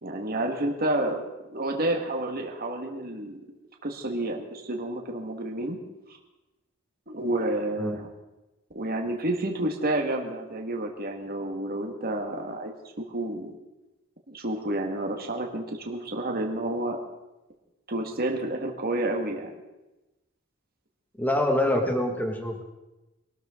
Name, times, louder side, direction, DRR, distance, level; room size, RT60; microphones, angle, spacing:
voice 1, 0.0-1.2 1.5-3.4 3.8-5.8 6.1-6.2 7.1-8.1 8.8-13.6 14.3-17.0 17.9-19.6, right 1 dB, 45° right, 2 dB, 1.9 m, -30 dB
voice 2, 21.2-22.6, left 1 dB, 10° left, 3 dB, 1.9 m, -25 dB
23.0 x 13.0 x 3.9 m, 1.0 s
head